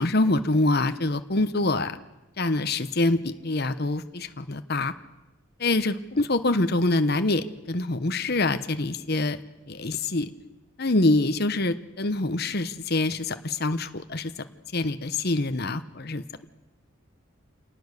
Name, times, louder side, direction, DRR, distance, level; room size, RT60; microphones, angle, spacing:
voice 1, 0.0-2.0 2.4-4.9 5.6-9.4 9.7-10.3 10.8-14.3 14.7-16.4, left 2 dB, 50° left, 9 dB, 1.1 m, -25 dB
27.5 x 19.0 x 6.7 m, 0.98 s
head